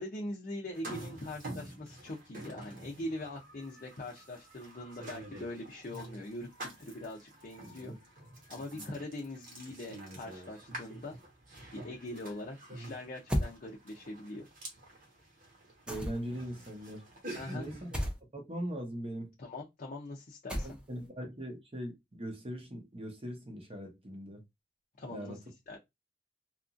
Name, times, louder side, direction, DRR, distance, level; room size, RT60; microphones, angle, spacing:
voice 1, 0.0-7.9 8.5-11.2 11.7-14.4 17.3-17.7 19.4-20.7 25.0-25.4 25.7-25.8, left 1 dB, 45° left, 0.5 m, -42 dB
sound 1, 0.7-18.0, right 1 dB, 50° right, 1.1 m, -48 dB
sound 2, 13.3-13.6 15.9-16.4 17.9-18.2 20.5-21.0, equal, 5° right, 0.5 m, -33 dB
voice 2, 15.9-17.1 17.5-18.0 18.3-19.3 20.6-24.4 25.1-25.4, equal, 30° right, 0.8 m, -40 dB
2.8 x 2.5 x 2.5 m
head